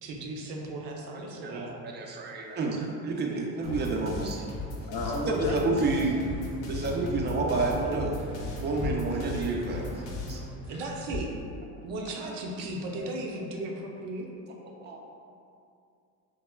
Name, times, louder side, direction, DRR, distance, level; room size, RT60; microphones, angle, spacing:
voice 1, 0.0-1.7 5.5-5.7 10.7-11.3 11.8-14.3, right 2 dB, 70° right, 0 dB, 0.6 m, -36 dB
voice 2, 1.1-4.5 5.3-6.2 6.7-8.2 8.6-10.0 10.3-10.4 12.2-12.3 12.6-12.7 13.0-13.1 14.8-15.0, right 3 dB, 25° right, 0 dB, 0.3 m, -30 dB
sound 1, 3.6-10.4, left 2 dB, 90° left, 0.7 m, -37 dB
voice 3, 4.9-5.8, left 2 dB, 50° left, 1 dB, 0.5 m, -33 dB
sound 2, 6.0-11.2, equal, 15° left, 0.8 m, -41 dB
3.3 x 2.1 x 2.2 m, 2.4 s
supercardioid pair, 75°, 42 cm